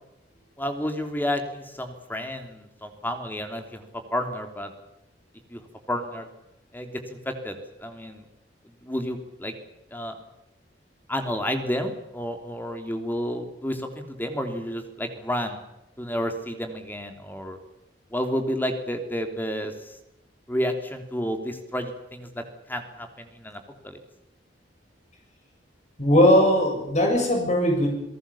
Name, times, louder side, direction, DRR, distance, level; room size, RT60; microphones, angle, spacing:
voice 1, 0.6-3.8 4.1-4.7 5.5-5.6 5.9-6.3 6.7-8.2 8.8-9.5 9.9-10.2 11.1-15.6 16.0-17.6 18.1-19.9 20.5-24.0, equal, 10° left, 6 dB, 3.2 m, -31 dB
voice 2, 26.0-27.9, left 1 dB, 40° left, 1 dB, 7.6 m, -19 dB
28.5 x 18.0 x 7.2 m, 0.88 s
head